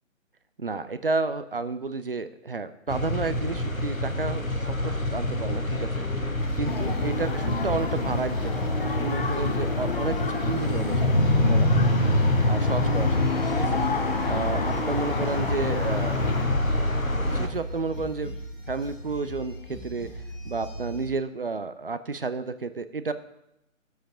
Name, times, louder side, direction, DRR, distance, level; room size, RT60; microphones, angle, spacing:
voice 1, 0.6-6.0 6.6-11.0 11.5-11.9 12.5-13.8 14.2-16.2 17.3-18.3 18.7-20.1 20.4-23.1, right 3 dB, 45° right, 12 dB, 0.7 m, -31 dB
sound 1, 2.9-17.5, left 1 dB, 90° left, 1.5 m, -26 dB
sound 2, 6.3-21.1, equal, 70° left, 2.6 m, -39 dB
sound 3, 6.7-16.5, left 4 dB, 45° left, 0.8 m, -31 dB
13.0 x 8.0 x 5.0 m, 0.85 s
figure-of-eight pair, 150°, 40 cm